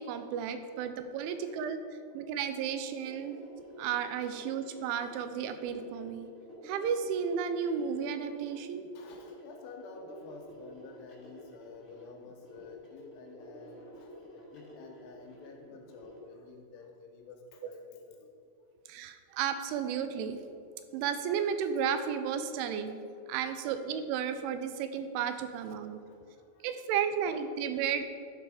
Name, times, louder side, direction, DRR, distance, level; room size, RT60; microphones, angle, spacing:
voice 1, 0.0-1.8 2.1-3.4 3.8-6.3 6.6-8.9 18.9-20.4 20.9-23.0 23.3-26.0 26.6-28.0, right 7 dB, 90° right, 9 dB, 3.1 m, -33 dB
voice 2, 1.2-1.5 1.8-1.9 3.6-3.8 8.9-18.3 26.0-26.7, left 4 dB, 80° left, 2 dB, 2.7 m, -51 dB
sound 1, 2.5-16.2, equal, 30° left, 1.4 m, -51 dB
11.5 x 5.0 x 4.9 m, 2.4 s
omnidirectional pair, 5.4 m